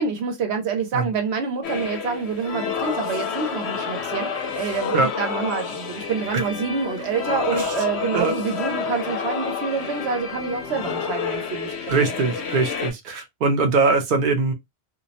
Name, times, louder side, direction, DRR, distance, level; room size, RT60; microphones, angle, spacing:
voice 1, 0.0-12.0, right 5 dB, 80° right, 1.0 m, -27 dB
sound 1, 1.6-12.9, left 5 dB, 85° left, 0.9 m, -29 dB
voice 2, 11.9-14.5, right 4 dB, 55° right, 0.7 m, -22 dB
2.5 x 2.0 x 2.7 m
omnidirectional pair, 1.1 m